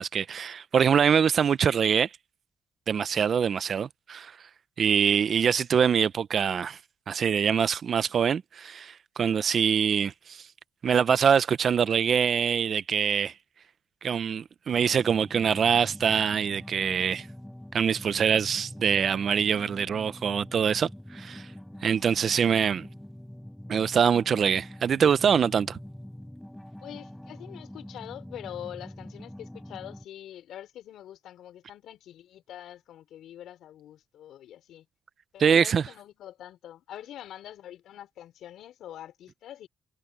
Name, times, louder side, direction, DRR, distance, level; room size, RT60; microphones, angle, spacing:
voice 1, 0.0-2.1 2.9-4.3 4.8-6.8 7.1-10.4 10.8-13.3 14.0-17.3 17.7-21.5 21.8-22.9 23.7-25.8 35.4-35.8, right 7 dB, 50° right, 0.7 m, -24 dB
sound 1, 14.7-30.0, left 1 dB, 5° left, 5.6 m, -44 dB
voice 2, 26.8-34.9 35.3-39.7, left 11 dB, 75° left, 5.2 m, -44 dB
cardioid pair, 90°, 0 cm